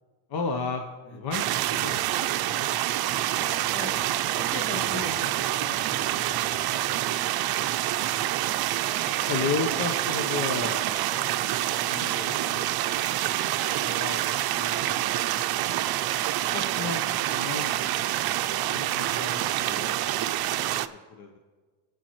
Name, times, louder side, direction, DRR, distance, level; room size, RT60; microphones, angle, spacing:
voice 1, 0.3-0.8 1.1-1.5 3.3-3.5 4.7-4.9 9.2-10.8 11.9-12.6 13.8-14.2 14.5-15.0 16.5-17.8 18.1-20.8 21.1-21.4, left 5 dB, 55° left, 3 dB, 1.0 m, -33 dB
sound 1, 1.3-20.9, right 13 dB, 55° right, 0.6 m, -27 dB
voice 2, 1.6-2.0 3.7-4.0 4.4-7.0 9.0-9.3 12.0-12.4 13.3-13.5 18.8-19.2, left 2 dB, 75° left, 0 dB, 2.5 m, -41 dB
sound 2, 6.2-16.7, left 3 dB, 10° left, 2.6 m, -52 dB
18.0 x 8.1 x 3.1 m, 1.4 s
cardioid pair, 100°, 46 cm